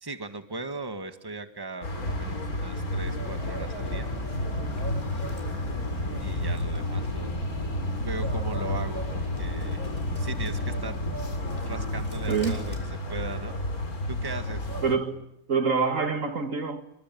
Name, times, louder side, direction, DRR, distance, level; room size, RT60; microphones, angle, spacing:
voice 1, 0.0-4.1 6.2-7.3 8.0-9.0 9.4-11.0 11.7-13.6 14.1-14.7, right 3 dB, 15° right, 1.7 m, -38 dB
sound 1, 1.8-15.0, left 1 dB, 75° left, 3.8 m, -31 dB
Bird, 3.0-12.8, right 1 dB, 30° left, 6.4 m, -40 dB
voice 2, 14.8-16.8, right 5 dB, 60° right, 2.0 m, -26 dB
26.5 x 24.0 x 9.3 m
omnidirectional pair, 1.6 m